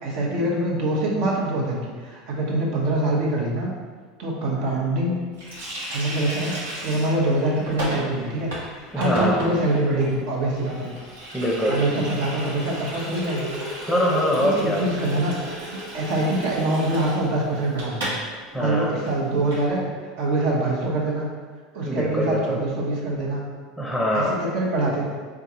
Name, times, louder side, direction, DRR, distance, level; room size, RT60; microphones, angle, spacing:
voice 1, 0.0-3.7 4.2-5.2 5.9-10.9 11.7-13.5 14.3-18.1 18.6-19.8 20.2-21.3 21.7-23.4 24.1-25.0, right 1 dB, 65° right, -3 dB, 1.1 m, -24 dB
Water tap faucet, 5.4-18.2 18.5-18.6 18.9-19.7, equal, 90° right, 1.1 m, -34 dB
voice 2, 8.9-9.4 11.3-11.9 13.9-14.9 18.5-18.9 21.8-22.6 23.8-24.4, equal, 5° right, -3 dB, 0.7 m, -23 dB
3.7 x 3.6 x 2.9 m, 1.5 s
hypercardioid pair, 90°, 0 cm